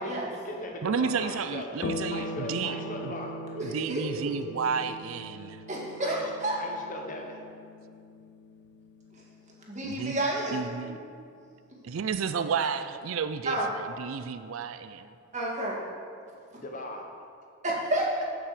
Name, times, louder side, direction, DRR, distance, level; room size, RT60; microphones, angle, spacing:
voice 1, 0.0-1.7 2.1-3.4 6.0-7.5 16.6-17.1, left 1 dB, 40° left, 2 dB, 1.1 m, -39 dB
voice 2, 0.8-3.1 3.6-5.6 9.8-10.2 10.5-11.0 11.8-15.1, right 6 dB, 85° right, 10 dB, 0.4 m, -32 dB
sound 1, 1.8-10.7, left 1 dB, 60° left, 0.6 m, -40 dB
voice 3, 3.6-4.3 5.7-6.6 9.7-10.6 13.5-13.7 15.3-15.8 17.6-18.2, right 1 dB, 35° right, -3 dB, 2.1 m, -30 dB
14.0 x 6.0 x 4.9 m, 2.3 s
head